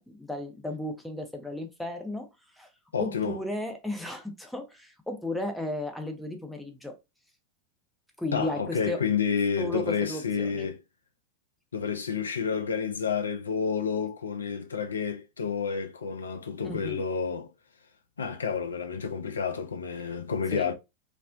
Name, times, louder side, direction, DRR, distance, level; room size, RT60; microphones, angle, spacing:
voice 1, 0.0-2.3 2.6-2.7 3.0-7.0 8.2-9.0 9.6-10.7 16.6-17.0 20.5-20.7, left 1 dB, 5° left, 0.6 m, -34 dB
voice 2, 2.9-3.4 8.3-10.8 11.7-17.5 18.2-20.7, left 6 dB, 70° left, 0.4 m, -30 dB
2.4 x 2.0 x 2.5 m
figure-of-eight pair, 90°, 0 cm